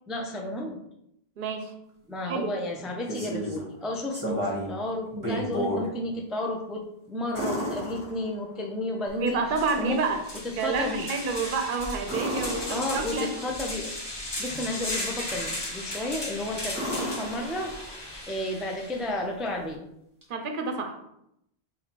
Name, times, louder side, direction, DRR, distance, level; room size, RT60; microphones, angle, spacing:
voice 1, 0.1-0.8 2.1-9.4 9.8-10.0 10.6-11.1 12.7-13.9 14.4-17.7 18.3-19.8, left 1 dB, ahead, 1 dB, 0.3 m, -32 dB
voice 2, 1.4-1.7 2.2-2.6 9.2-10.2 10.6-13.3 20.3-21.0, right 4 dB, 60° right, 6 dB, 0.8 m, -29 dB
sound 1, 2.8-3.6 4.1-4.8 5.1-5.9 7.3-8.6 12.0-13.3 15.8-16.2 16.7-18.1 20.2-20.3, equal, 20° right, 1.2 m, -32 dB
sound 2, 9.1-9.2 9.5-19.1, left 1 dB, 30° left, 0.7 m, -36 dB
4.2 x 2.7 x 4.4 m, 0.79 s
omnidirectional pair, 1.0 m